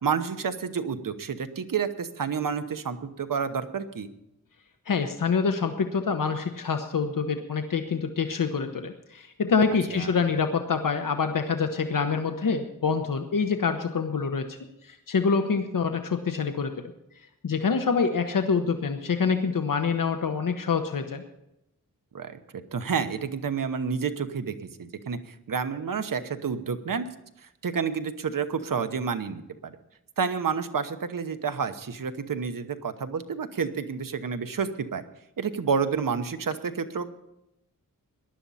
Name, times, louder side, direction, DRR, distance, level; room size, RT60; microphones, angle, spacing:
voice 1, 0.0-4.1 9.9-10.2 22.1-22.4 22.7-27.1 27.6-29.8 30.2-35.0 35.4-37.1, right 6 dB, 75° right, 9 dB, 1.1 m, -29 dB
voice 2, 4.9-16.9 17.4-21.2, left 5 dB, 75° left, 6 dB, 1.0 m, -26 dB
19.0 x 11.5 x 4.2 m, 0.85 s
wide cardioid pair, 95°, 33 cm